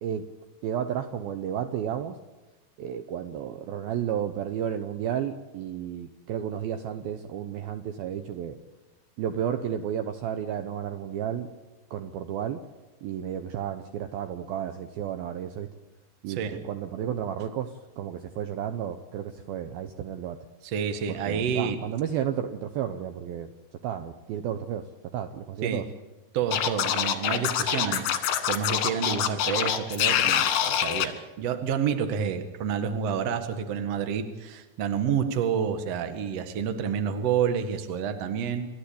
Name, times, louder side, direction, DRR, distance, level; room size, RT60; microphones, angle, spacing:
voice 1, 0.6-2.2 2.8-8.6 9.2-11.5 11.9-12.6 13.0-15.7 16.2-17.7 18.0-20.4 21.1-23.5 23.8-24.8 25.1-25.8, right 9 dB, 75° right, 8 dB, 2.4 m, -32 dB
voice 2, 16.3-16.6 20.6-21.8 25.6-25.8 26.3-38.7, right 7 dB, 50° right, 7 dB, 2.0 m, -29 dB
Scratching (performance technique), 26.5-31.1, left 9 dB, 85° left, 3.9 m, -25 dB
29.0 x 13.5 x 8.5 m, 1.1 s
omnidirectional pair, 5.0 m